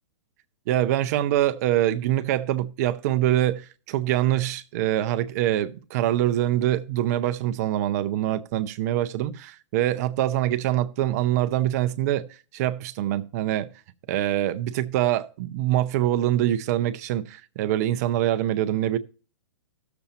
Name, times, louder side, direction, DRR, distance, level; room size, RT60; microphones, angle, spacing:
voice 1, 0.7-12.2 12.5-13.7 14.1-19.0, right 13 dB, 35° right, 0.6 m, -24 dB
16.0 x 7.0 x 2.8 m
hypercardioid pair, 160°, 15 cm